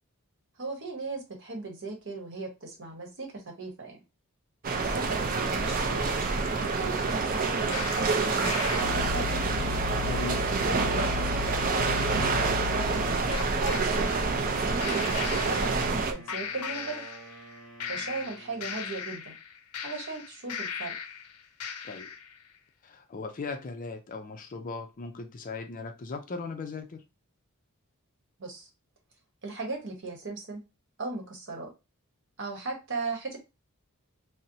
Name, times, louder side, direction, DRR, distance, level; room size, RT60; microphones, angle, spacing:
voice 1, 0.6-4.0 4.8-6.1 6.7-9.4 10.6-11.1 11.4-13.0 13.6-15.0 15.4-17.0 17.9-19.3 19.8-20.9 28.4-28.7 29.4-30.6 31.0-31.7 32.4-33.4, right 3 dB, 55° right, 1.0 m, -37 dB
sound 1, 4.6-16.1, right 4 dB, 40° right, 0.4 m, -27 dB
sound 2, 7.7-13.8 14.8-16.0 16.3-17.5 17.8-21.2 21.6-22.2, left 6 dB, 90° left, 0.5 m, -36 dB
voice 2, 10.0-10.4 21.8-22.1 22.8-27.0, left 4 dB, 35° left, 0.4 m, -38 dB
Wind instrument woodwind instrument, 14.9-19.1, right 3 dB, ahead, 1.1 m, -50 dB
4.1 x 2.0 x 2.6 m
head